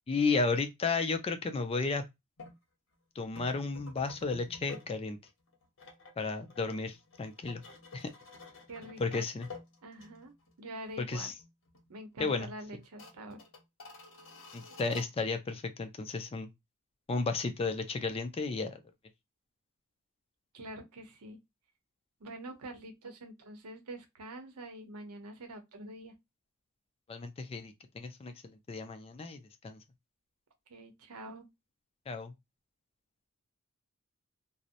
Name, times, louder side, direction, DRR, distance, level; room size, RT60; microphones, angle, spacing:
voice 1, 0.1-2.0 3.2-5.2 6.2-7.6 7.9-8.1 9.0-9.5 11.1-11.3 12.2-12.5 14.5-16.5 17.1-18.8 27.1-29.8 32.1-32.3, left 4 dB, 25° left, 0.3 m, -33 dB
sound 1, 2.4-2.6 3.4-4.9 5.2-10.5 10.8-10.9 11.4-11.9 12.2-12.3 12.8-15.1, left 3 dB, 60° left, 0.8 m, -51 dB
voice 2, 8.7-9.3 9.8-10.3 10.6-11.3 11.9-13.4 20.5-21.4 22.2-26.1 30.7-31.5, right 1 dB, 85° right, 0.7 m, -45 dB
2.7 x 2.0 x 2.5 m
head